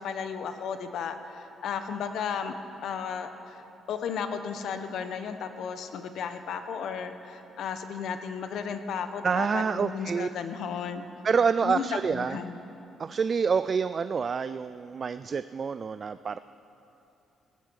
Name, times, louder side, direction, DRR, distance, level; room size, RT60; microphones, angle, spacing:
voice 1, 0.0-2.5 2.8-3.6 3.9-11.1 11.6-12.6, left 6 dB, 75° left, 8 dB, 1.0 m, -34 dB
voice 2, 9.2-10.3 11.2-12.4 13.0-16.4, right 5 dB, 45° right, 13 dB, 0.3 m, -27 dB
16.0 x 15.5 x 4.8 m, 2.9 s
cardioid pair, 90°, 0 cm